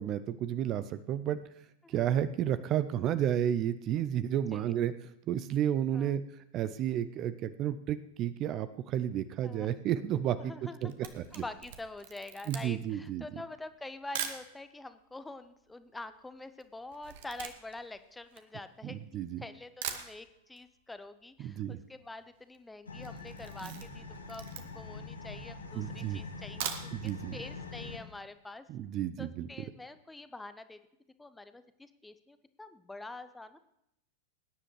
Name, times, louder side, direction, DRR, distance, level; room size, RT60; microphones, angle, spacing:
voice 1, 0.0-1.4 1.9-6.2 6.5-10.5 10.8-11.2 12.5-13.2 18.8-19.4 21.4-21.8 23.6-23.8 25.8-26.2 26.9-27.4 28.7-29.5, right 10 dB, 35° right, 14 dB, 0.5 m, -32 dB
voice 2, 1.8-2.2 3.9-4.0 4.5-4.7 5.9-6.2 9.4-9.7 10.4-28.7 29.2-30.8 31.2-33.6, left 2 dB, 10° left, 12 dB, 0.6 m, -46 dB
Camera, 10.8-14.5 15.2-15.3 15.4-19.1 19.5-19.6 19.8-20.7 20.9-21.0 21.3-21.4 21.6-22.0 22.4-22.6 23.0-25.0 25.5-25.6 26.4-27.2 27.5-27.6 28.0-28.1, right 9 dB, 50° right, 1.2 m, -42 dB
sound 1, 22.9-28.0, left 4 dB, 75° left, 1.3 m, -44 dB
19.5 x 9.9 x 3.2 m, 0.79 s
figure-of-eight pair, 90°, 0 cm